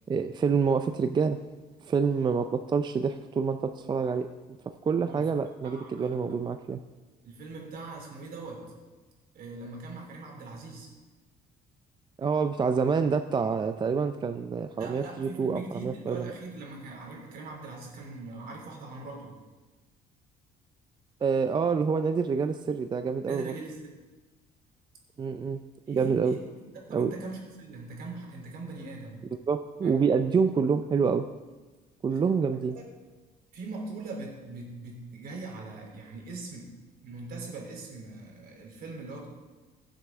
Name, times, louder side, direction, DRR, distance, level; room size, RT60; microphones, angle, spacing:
voice 1, 0.1-1.4 1.8-4.3 4.9-6.8 12.2-16.3 21.2-23.5 25.2-25.6 25.9-26.4 26.9-27.1 29.5-31.3 32.0-32.7, right 5 dB, 25° right, 8 dB, 0.4 m, -27 dB
voice 2, 5.0-5.3 5.6-6.3 7.2-8.6 9.3-10.9 14.7-19.4 23.2-23.8 25.9-29.3 29.8-29.9 32.7-32.8 33.5-36.7 37.0-39.3, right 3 dB, 60° right, 0 dB, 3.2 m, -41 dB
16.5 x 7.6 x 3.6 m, 1.2 s
cardioid pair, 110°, 17 cm